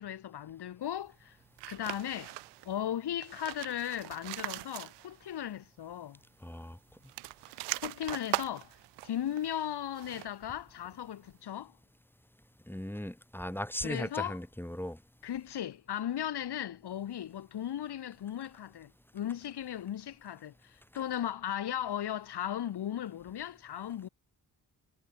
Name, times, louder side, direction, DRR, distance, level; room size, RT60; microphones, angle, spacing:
voice 1, 0.0-1.4 1.7-2.4 2.6-6.2 7.8-8.7 9.0-11.7 13.8-14.4 15.2-24.1, left 10 dB, 70° left, 1.7 m, -37 dB
sound 1, 1.6-2.7 3.1-5.4 5.6-5.7 7.0-10.5, right 20 dB, 85° right, 0.5 m, -40 dB
voice 2, 6.4-6.8 12.7-15.0, equal, 5° left, 2.1 m, -37 dB
supercardioid pair, 40°, 41 cm